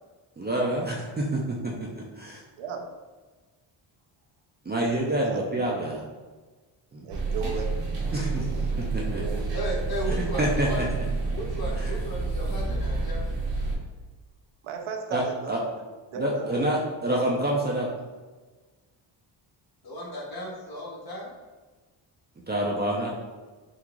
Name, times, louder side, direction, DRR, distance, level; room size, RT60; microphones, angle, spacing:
voice 1, 0.4-1.9 2.1-2.4 4.7-6.0 6.9-7.1 8.1-8.5 8.8-9.4 10.1-11.0 11.7-12.0 15.1-15.6 16.2-17.9 22.5-23.1, right 1 dB, 20° right, -3 dB, 0.4 m, -27 dB
voice 2, 2.6-2.9 5.2-5.4 7.0-7.7 8.0-9.5 14.6-15.5 16.1-16.8, right 5 dB, 80° right, 2 dB, 0.6 m, -36 dB
sound 1, 7.1-13.7, right 3 dB, 60° right, 1.2 m, -29 dB
voice 3, 9.3-10.8 11.3-13.2 19.8-21.3, equal, 50° left, -3 dB, 1.1 m, -35 dB
3.7 x 2.4 x 3.0 m, 1.3 s
cardioid pair, 100°, 48 cm